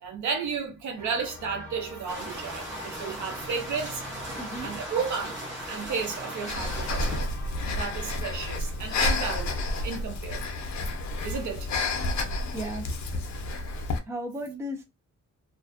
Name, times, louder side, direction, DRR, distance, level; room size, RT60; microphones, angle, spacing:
voice 1, 0.0-4.0 4.6-5.4 5.7-7.3 7.7-10.4 11.2-11.7, right 5 dB, 80° right, 0.8 m, -33 dB
sound 1, 1.0-10.2, left 1 dB, 10° left, 0.8 m, -46 dB
sound 2, 2.1-7.2, equal, 40° right, 1.0 m, -37 dB
voice 2, 4.4-4.7 12.5-12.9 14.0-14.8, equal, 10° right, 0.4 m, -35 dB
Breathing, 6.5-14.0, left 2 dB, 70° left, 0.6 m, -30 dB
2.4 x 2.2 x 2.4 m
wide cardioid pair, 165°, 29 cm